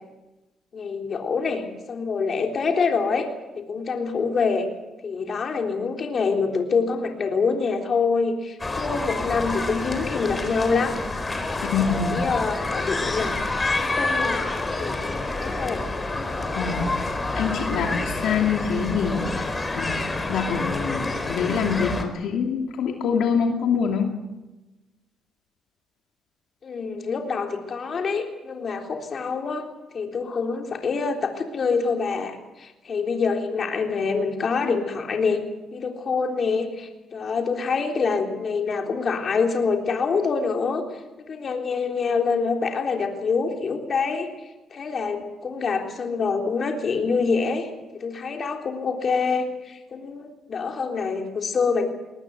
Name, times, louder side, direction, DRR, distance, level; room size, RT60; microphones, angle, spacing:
voice 1, 0.7-3.3 3.5-4.7 5.0-11.0 11.5-11.7 12.0-13.4 13.8-14.4 14.8-15.0 15.4-15.9 26.6-29.7 29.9-35.4 35.7-40.8 41.3-44.3 44.7-47.7 47.9-51.9, left 5 dB, 50° left, 3 dB, 3.6 m, -26 dB
sound 1, 8.6-22.0, left 2 dB, 20° left, 4.0 m, -28 dB
voice 2, 11.6-12.3 16.6-17.0 17.3-19.5 19.8-24.1, left 6 dB, 80° left, 2 dB, 2.8 m, -25 dB
21.5 x 19.5 x 8.1 m, 1.1 s
cardioid pair, 90°, 0 cm